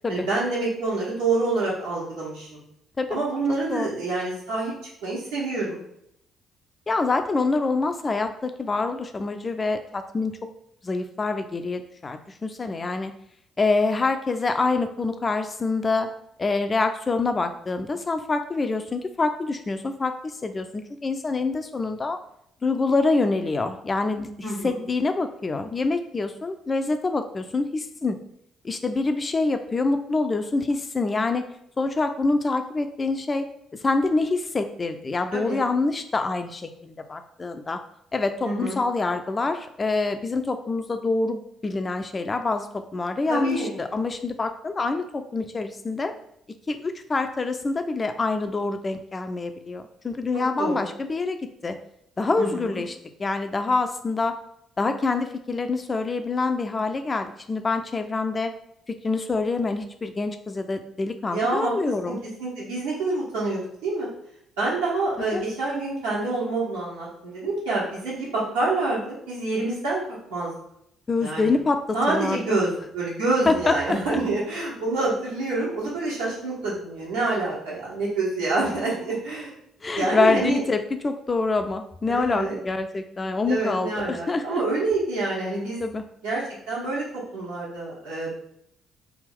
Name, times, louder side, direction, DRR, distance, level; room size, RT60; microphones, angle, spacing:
voice 1, 0.1-2.6 3.1-4.7 5.0-5.8 24.4-24.8 35.3-35.6 38.4-38.8 43.3-43.8 50.3-50.8 52.4-52.8 61.3-61.7 62.1-62.2 62.4-64.1 64.6-70.0 70.3-70.5 71.2-71.5 71.9-79.5 79.9-80.6 82.1-82.6 83.2-85.8 86.2-88.3, right 3 dB, 80° right, -7 dB, 1.3 m, -27 dB
voice 2, 6.9-10.4 10.8-13.1 13.6-16.1 16.4-20.1 20.4-22.2 22.6-28.2 28.6-31.4 31.8-33.5 33.8-37.8 38.1-42.7 42.9-46.1 46.7-51.4 51.6-51.7 52.2-54.3 54.8-58.5 58.9-62.2 65.2-65.4 71.1-72.6 73.5-74.2 79.8-84.6 85.8-86.0, left 3 dB, 30° left, 8 dB, 0.4 m, -26 dB
3.4 x 2.4 x 3.6 m, 0.75 s
figure-of-eight pair, 45°, 0 cm